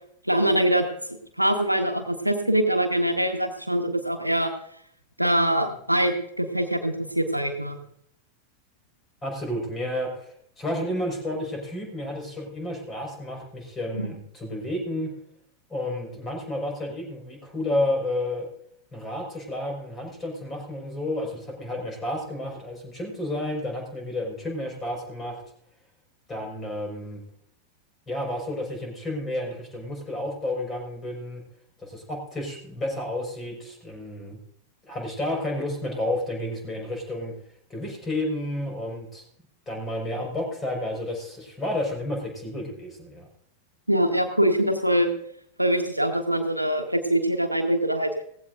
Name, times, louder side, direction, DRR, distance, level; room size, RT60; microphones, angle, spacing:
voice 1, 0.2-4.5 5.2-7.8 13.9-14.1 43.9-45.1 45.6-48.1, right 1 dB, 90° right, 4 dB, 1.5 m, -23 dB
voice 2, 9.2-15.1 15.7-18.5 18.9-25.4 26.3-27.2 28.1-31.4 31.8-34.4 34.9-37.4 37.7-39.2 39.7-43.3, left 1 dB, 20° left, 1 dB, 5.5 m, -31 dB
17.5 x 15.5 x 2.6 m, 0.69 s
figure-of-eight pair, 90°, 0 cm